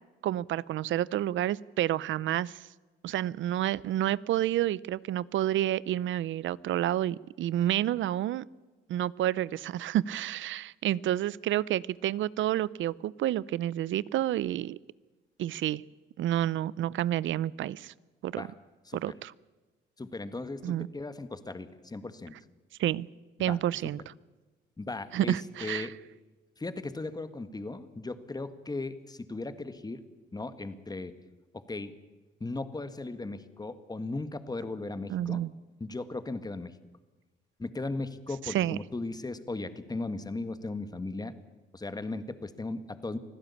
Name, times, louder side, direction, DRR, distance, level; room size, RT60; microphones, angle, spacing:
voice 1, 0.2-2.6 3.0-8.5 8.9-14.8 15.4-15.8 16.2-17.9 18.2-18.5 18.9-19.3 20.6-20.9 22.8-23.1 23.4-24.0 25.1-25.9 35.1-35.5 38.5-38.8, right 12 dB, 75° right, 22 dB, 0.6 m, -29 dB
voice 2, 20.0-22.3 23.4-23.6 24.8-25.9 26.6-30.0 30.3-31.1 31.5-32.0 32.4-35.4 35.8-36.8 37.6-41.3 41.7-43.2, left 2 dB, 20° left, 11 dB, 1.8 m, -37 dB
24.5 x 15.5 x 8.5 m, 1.2 s
cardioid pair, 90°, 20 cm